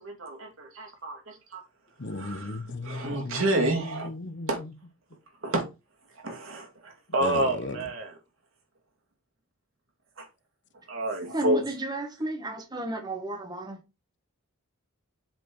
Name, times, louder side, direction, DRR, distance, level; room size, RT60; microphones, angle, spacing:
voice 1, 0.0-1.6 2.1-4.1 4.5-4.6 5.4-5.7 6.2-8.2 10.2-10.3 10.9-11.6, right 1 dB, 65° right, 2.4 m, -29 dB
voice 2, 2.0-4.5 7.2-7.8, left 2 dB, 55° left, 0.8 m, -35 dB
voice 3, 11.2-13.8, right 1 dB, 20° right, 1.6 m, -33 dB
7.8 x 4.5 x 4.6 m
head